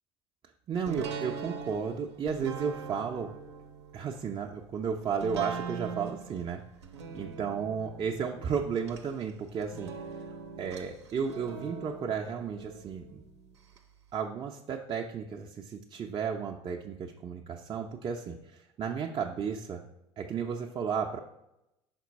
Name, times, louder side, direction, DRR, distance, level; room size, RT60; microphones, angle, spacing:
voice 1, 0.7-3.3 3.9-6.6 7.1-9.9 10.6-13.2 14.1-19.8 20.2-21.2, right 6 dB, 35° right, 1 dB, 0.5 m, -33 dB
sound 1, 0.8-13.8 14.2-14.3, right 5 dB, 80° right, 0.7 m, -42 dB
5.9 x 4.4 x 4.0 m, 0.87 s
figure-of-eight pair, 65°, 14 cm